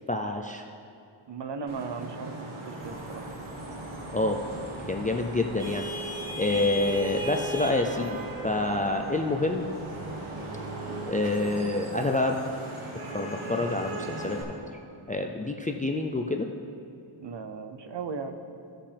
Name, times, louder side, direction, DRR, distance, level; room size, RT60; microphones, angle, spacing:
voice 1, 0.1-0.7 4.1-4.4 4.9-5.8 6.3-8.2 8.4-9.6 11.1-12.4 13.1-14.4 15.1-16.5, left 2 dB, 20° left, 3 dB, 0.3 m, -27 dB
voice 2, 1.3-3.3 6.5-6.7 17.2-18.4, right 5 dB, 60° right, 8 dB, 0.7 m, -37 dB
Vehicle horn car horn honking / Traffic noise roadway noise, 1.7-14.4, right 1 dB, 80° right, 1.7 m, -37 dB
sound 1, 2.8-11.3, right 1 dB, 20° right, 0.9 m, -46 dB
16.0 x 5.7 x 3.4 m, 2.6 s
wide cardioid pair, 130°, 48 cm